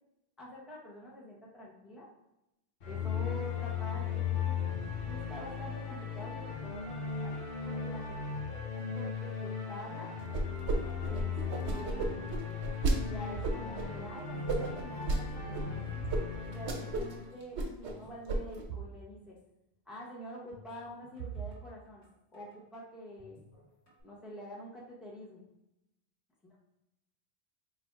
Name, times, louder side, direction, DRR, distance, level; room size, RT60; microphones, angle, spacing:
voice 1, 0.4-2.1 2.9-4.6 5.1-10.1 11.0-11.3 11.6-12.5 12.9-16.1 16.5-19.4 19.9-22.1 22.3-23.4 24.0-25.4, equal, ahead, -5 dB, 0.7 m, -47 dB
sound 1, 2.8-17.3, left 6 dB, 60° left, 0.9 m, -37 dB
sound 2, 10.3-10.8 11.0-13.0 13.4-13.8 14.5-15.2 15.5-15.6 16.1-16.2 16.5-17.1 17.4-18.0 18.3-18.6, right 2 dB, 85° right, 1.0 m, -32 dB
sound 3, 13.3-14.9 15.2-16.8 17.0-17.2 17.8-19.0 19.2-19.3 20.5-22.6 23.2-24.0, right 8 dB, 75° left, 1.7 m, -46 dB
3.1 x 2.6 x 4.5 m, 0.89 s
omnidirectional pair, 1.1 m